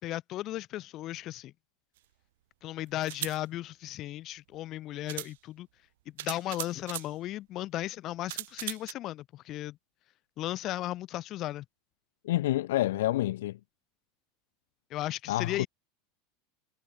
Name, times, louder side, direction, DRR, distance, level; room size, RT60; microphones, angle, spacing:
voice 1, 0.0-1.5 2.6-5.7 6.1-9.8 10.4-11.7 14.9-15.7, left 15 dB, 45° left, 2.4 m, -36 dB
sound 1, 2.0-2.1 3.0-3.4 4.5-4.6 5.1-5.3 6.2-7.1 8.3-8.9, right 16 dB, 75° right, 2.1 m, -38 dB
voice 2, 12.2-13.6 15.3-15.7, left 15 dB, 80° left, 0.7 m, -28 dB
supercardioid pair, 110°, 0 cm